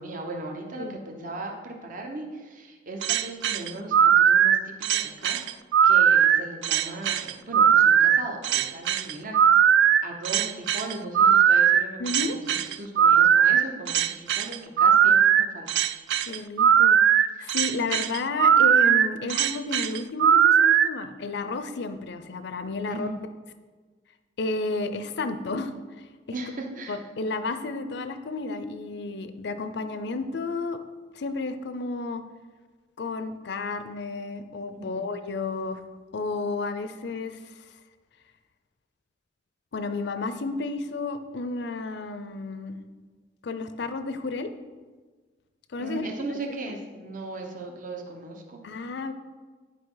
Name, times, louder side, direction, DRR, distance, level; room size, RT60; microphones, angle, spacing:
voice 1, 0.0-5.4 5.8-9.4 10.0-15.7 17.4-17.6 22.9-23.2 26.3-27.0 34.8-35.1 45.8-48.6, right 2 dB, 45° right, 2 dB, 1.0 m, -37 dB
sound 1, 3.0-20.9, right 8 dB, 70° right, 0.3 m, -19 dB
voice 2, 12.0-12.4 16.2-17.0 17.4-23.1 24.4-26.1 26.9-30.8 31.2-32.2 33.0-35.8 36.1-37.5 39.7-42.8 43.4-44.5 45.7-46.1 48.6-49.1, left 3 dB, 65° left, 10 dB, 0.5 m, -32 dB
11.0 x 4.9 x 3.9 m, 1.4 s
head